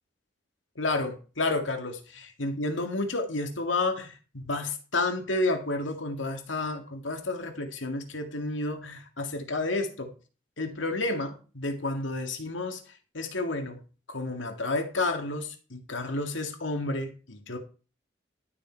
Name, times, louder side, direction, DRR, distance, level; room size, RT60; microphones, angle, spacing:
voice 1, 0.8-10.1 10.6-13.8 14.1-17.6, left 2 dB, 90° left, 2.3 m, -31 dB
12.0 x 7.0 x 4.6 m
head